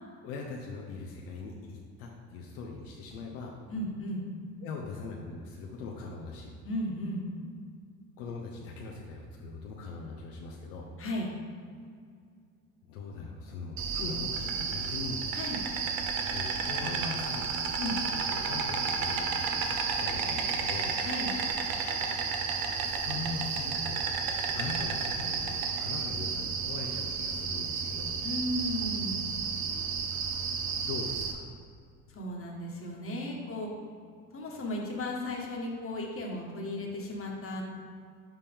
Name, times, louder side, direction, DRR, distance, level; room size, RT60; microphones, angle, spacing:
voice 1, 0.2-3.6 4.6-6.5 8.2-10.9 12.8-15.2 16.3-17.5 18.3-21.0 22.8-24.1 24.5-28.2 30.7-31.5, left 3 dB, 70° left, -1 dB, 0.9 m, -40 dB
voice 2, 3.7-4.2 6.6-7.3 11.0-11.3 15.3-15.6 17.8-18.0 21.0-21.3 28.2-29.2 32.1-33.7 34.3-37.6, left 1 dB, 30° left, -1 dB, 1.5 m, -35 dB
Insect, 13.8-31.3, right 5 dB, 45° right, 0.9 m, -32 dB
7.4 x 4.1 x 3.5 m, 2.2 s
hypercardioid pair, 60°, 47 cm